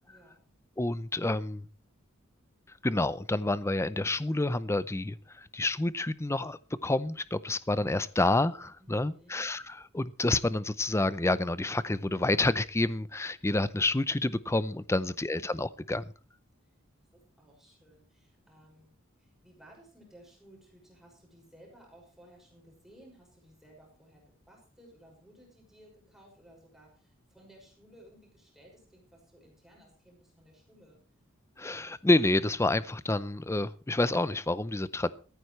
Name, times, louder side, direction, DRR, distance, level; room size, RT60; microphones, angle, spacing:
voice 1, 0.1-0.5 8.8-9.5 17.1-31.0, right 1 dB, ahead, 6.0 m, -58 dB
voice 2, 0.8-1.7 2.8-16.0 31.6-35.1, left 2 dB, 15° left, 0.5 m, -28 dB
17.5 x 14.0 x 3.2 m
head